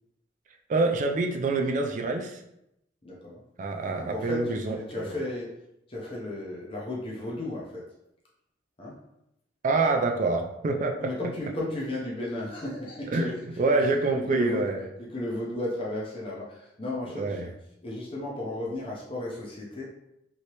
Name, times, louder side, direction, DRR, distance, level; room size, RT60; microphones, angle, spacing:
voice 1, 0.7-2.4 3.6-4.8 5.0-5.1 9.6-11.0 13.1-14.8 17.1-17.5, right 3 dB, 40° right, 3 dB, 0.3 m, -26 dB
voice 2, 3.0-3.4 4.0-5.5 5.9-7.8 8.8-9.0 11.0-13.4 14.1-14.7 15.0-17.5 17.8-19.8, left 1 dB, 30° left, -5 dB, 0.6 m, -34 dB
3.1 x 2.8 x 2.9 m, 0.82 s
head